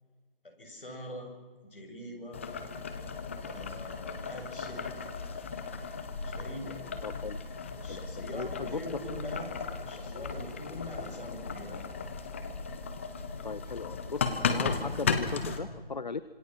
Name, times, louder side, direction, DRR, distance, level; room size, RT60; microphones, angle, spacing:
voice 1, 0.4-1.3 1.6-2.4 3.4-4.9 6.2-6.9 7.8-9.5 9.8-11.8, equal, 65° left, 3 dB, 7.8 m, -43 dB
Boiling, 2.3-15.6, left 5 dB, 15° left, 0.9 m, -36 dB
voice 2, 7.0-7.4 7.9-8.8 13.4-16.2, left 4 dB, 50° left, 16 dB, 0.8 m, -38 dB
26.5 x 26.0 x 6.0 m, 1.4 s
figure-of-eight pair, 155°, 29 cm